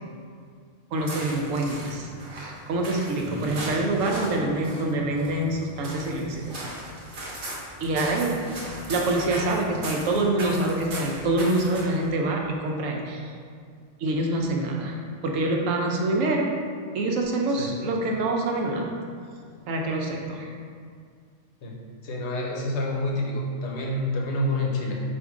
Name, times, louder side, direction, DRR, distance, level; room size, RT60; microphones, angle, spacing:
sound 1, 0.9-12.1, right 1 dB, 45° right, 0.9 m, -38 dB
voice 1, 0.9-6.6 7.8-8.3 8.9-13.2 14.0-16.6 16.9-18.8 19.7-20.5, right 2 dB, 75° right, 1 dB, 1.0 m, -26 dB
voice 2, 3.3-3.6 17.5-17.7 21.6-21.8 22.0-25.0, left 1 dB, 60° left, -1 dB, 0.9 m, -28 dB
4.3 x 2.6 x 4.7 m, 2.1 s
omnidirectional pair, 1.4 m